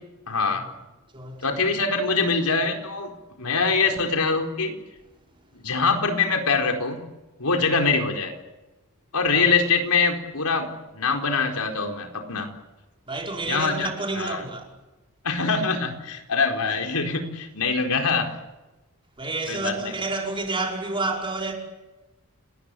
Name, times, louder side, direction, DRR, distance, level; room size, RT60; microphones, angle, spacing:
voice 1, 0.3-0.6 1.4-3.1 3.4-4.8 5.5-7.0 7.4-8.3 9.1-12.5 13.5-13.9 14.2-14.4 15.2-18.3 19.5-19.9, left 4 dB, 85° left, 4.4 m, -24 dB
voice 2, 1.1-1.5 9.3-9.5 13.1-14.6 19.2-21.5, right 3 dB, 25° right, 5.5 m, -29 dB
30.0 x 20.0 x 8.6 m
head